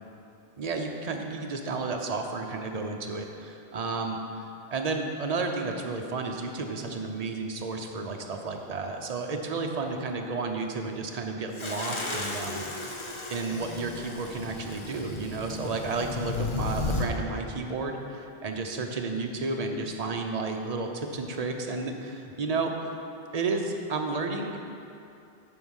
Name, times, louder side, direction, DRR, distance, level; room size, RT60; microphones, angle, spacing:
voice 1, 0.6-4.2 4.7-13.0 13.3-22.7 23.3-24.6, right 3 dB, 40° right, 3 dB, 0.7 m, -32 dB
sound 1, 11.5-17.1, left 3 dB, 30° left, 0.7 m, -34 dB
9.1 x 4.7 x 6.3 m, 2.6 s
omnidirectional pair, 1.1 m